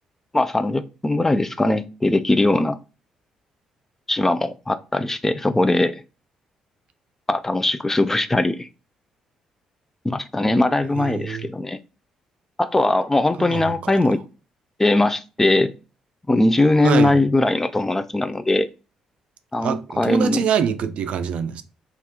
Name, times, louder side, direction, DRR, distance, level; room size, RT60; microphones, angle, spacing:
voice 1, 0.3-2.8 4.1-5.9 7.3-8.7 10.0-11.8 12.6-14.2 14.8-15.7 16.3-18.7 19.5-20.4, left 2 dB, 15° left, 0.4 m, -20 dB
voice 2, 11.0-11.5 13.4-14.0 16.8-17.2 19.6-21.6, right 8 dB, 65° right, 0.4 m, -25 dB
3.2 x 2.4 x 2.8 m
hypercardioid pair, 55°, 2 cm